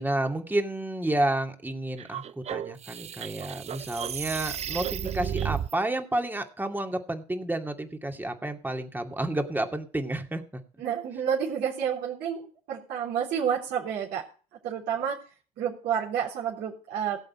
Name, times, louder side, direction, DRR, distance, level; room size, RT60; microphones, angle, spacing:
voice 1, 0.0-10.6, right 1 dB, 10° right, 4 dB, 2.4 m, -30 dB
sound 1, 2.0-5.7, right 9 dB, 35° right, 0.5 m, -33 dB
voice 2, 10.8-14.3 14.6-15.2 15.6-17.2, right 8 dB, 60° right, -6 dB, 3.6 m, -30 dB
17.5 x 7.6 x 4.4 m, 0.38 s
hypercardioid pair, 60°, 20 cm